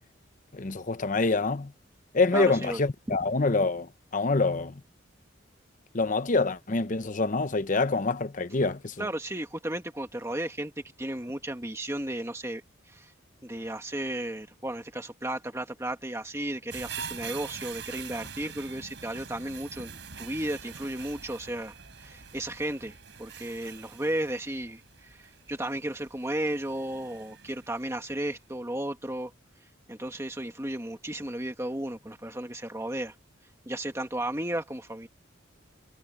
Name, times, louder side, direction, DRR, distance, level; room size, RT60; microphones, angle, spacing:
voice 1, 0.5-1.7 2.1-4.8 5.9-9.1, left 3 dB, 40° left, 0.8 m, -26 dB
voice 2, 2.3-2.8 9.0-10.7 11.0-12.6 12.9-13.1 13.4-29.3 29.9-33.1 33.6-35.1, right 1 dB, 15° right, 1.7 m, -34 dB
sound 1, 16.7-27.9 28.4-28.5, right 6 dB, 65° right, 4.1 m, -44 dB
head